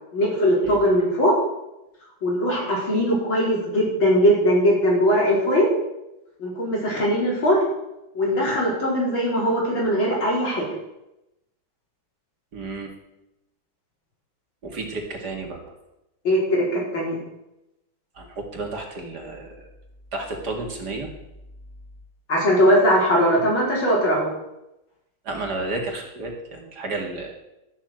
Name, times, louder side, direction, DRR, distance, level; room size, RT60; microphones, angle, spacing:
voice 1, 0.1-1.3 2.2-5.7 6.4-7.6 8.2-10.7 16.3-17.2 22.3-24.3, equal, 75° left, -4 dB, 5.2 m, -20 dB
voice 2, 12.5-12.9 14.6-15.7 18.1-19.7 20.1-21.1 25.2-27.3, right 2 dB, 55° right, 2 dB, 2.6 m, -32 dB
13.0 x 7.4 x 7.6 m, 0.90 s
omnidirectional pair, 2.2 m